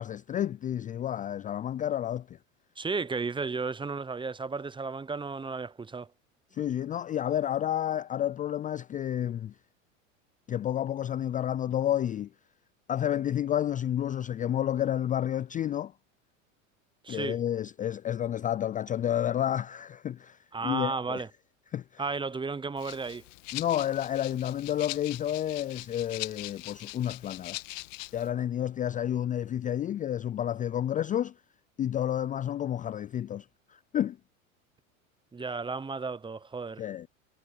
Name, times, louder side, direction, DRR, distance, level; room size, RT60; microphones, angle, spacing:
voice 1, 0.0-2.4 6.5-9.5 10.5-12.3 12.9-15.9 17.1-21.2 21.7-22.0 23.5-27.6 28.1-31.3 31.8-34.2 36.8-37.1, left 11 dB, 20° left, 0.4 m, -30 dB
voice 2, 2.8-6.1 17.0-17.4 20.5-21.3 22.0-23.2 35.3-36.8, right 4 dB, 10° right, 0.8 m, -33 dB
Rattle (instrument), 22.8-28.3, left 21 dB, 65° left, 1.6 m, -41 dB
hypercardioid pair, 95°, 40 cm